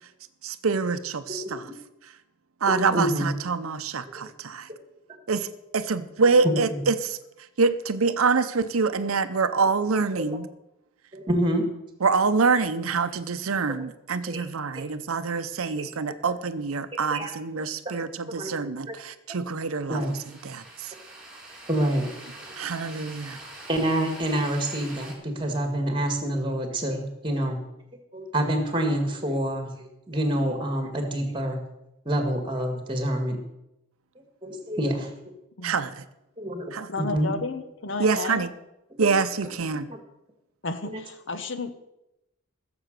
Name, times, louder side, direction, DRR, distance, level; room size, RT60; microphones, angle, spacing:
voice 1, 0.4-1.7 2.6-4.7 5.3-5.5 5.7-7.2 7.6-10.5 12.0-20.0 20.4-20.9 22.6-23.4 35.6-36.1 36.7-36.9 38.0-38.5 39.0-39.9, right 4 dB, 80° right, 12 dB, 0.7 m, -25 dB
voice 2, 1.3-1.7 2.9-3.3 4.2-4.3 6.4-6.8 11.1-11.6 13.7-13.8 14.3-14.5 14.8-14.9 15.6-15.7 16.3-16.4 17.1-17.3 17.9-18.0 18.4-18.5 18.9-19.0 19.9-20.1 21.7-22.1 23.7-27.6 28.1-31.6 32.1-33.4 34.4-35.1 36.4-37.3 38.9-39.1 39.7-40.0 40.8-41.0, right 1 dB, 20° right, 5 dB, 1.9 m, -27 dB
sound 1, 20.0-25.1, right 1 dB, 5° right, 2.6 m, -44 dB
voice 3, 36.9-38.4 40.6-41.7, left 3 dB, 60° left, 10 dB, 1.0 m, -32 dB
15.5 x 7.1 x 6.6 m, 0.90 s
head